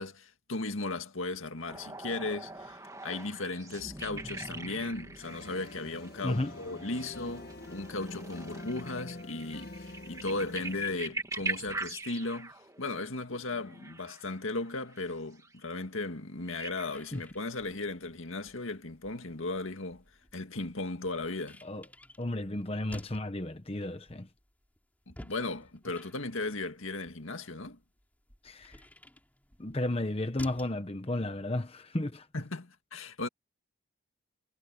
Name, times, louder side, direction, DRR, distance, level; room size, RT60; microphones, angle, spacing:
voice 1, 0.0-12.5 12.8-20.0 20.3-21.6 25.1-27.8 32.3-33.3, left 2 dB, 75° left, 2.0 m, -36 dB
sound 1, 1.7-15.0 15.4-15.8 16.5-17.1 17.6-18.4 19.7-19.8, right 3 dB, 15° right, 2.1 m, -43 dB
sound 2, 5.2-11.0, left 2 dB, 50° left, 1.8 m, -45 dB
voice 2, 6.2-6.5 17.1-17.2 21.6-21.8 22.2-24.3 28.4-28.8 29.6-32.3, left 1 dB, 30° left, 1.0 m, -33 dB
sound 3, 16.9-30.8, left 1 dB, 10° left, 3.4 m, -54 dB
head